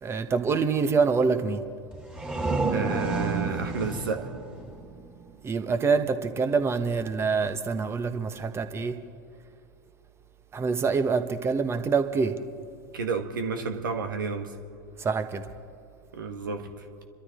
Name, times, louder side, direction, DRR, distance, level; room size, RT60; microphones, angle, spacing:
voice 1, 0.0-1.6 5.4-9.0 10.5-12.3 15.0-15.4, right 5 dB, 25° right, 9 dB, 1.2 m, -25 dB
sound 1, 1.9-5.5, right 3 dB, 10° right, 3.2 m, -30 dB
voice 2, 2.7-4.3 12.9-14.5 16.1-16.8, right 4 dB, 75° right, 5 dB, 1.6 m, -31 dB
28.5 x 13.0 x 3.8 m, 2.2 s
figure-of-eight pair, 85°, 11 cm